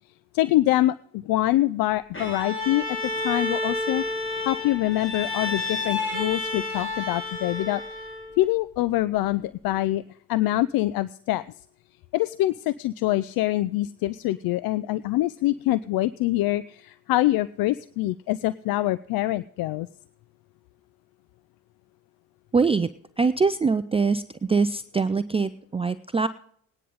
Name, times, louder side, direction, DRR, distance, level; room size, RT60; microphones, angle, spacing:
voice 1, 0.3-3.0 3.2-4.0 4.4-7.8 8.4-10.0 10.3-11.4 12.1-19.9, left 16 dB, 55° left, 17 dB, 0.5 m, -25 dB
Bowed string instrument, 2.1-8.4, left 2 dB, 25° left, 3.3 m, -30 dB
voice 2, 22.5-22.9 23.2-24.2 24.5-26.3, right 4 dB, 15° right, 13 dB, 0.5 m, -23 dB
19.0 x 10.0 x 3.9 m, 0.63 s
hypercardioid pair, 50°, 44 cm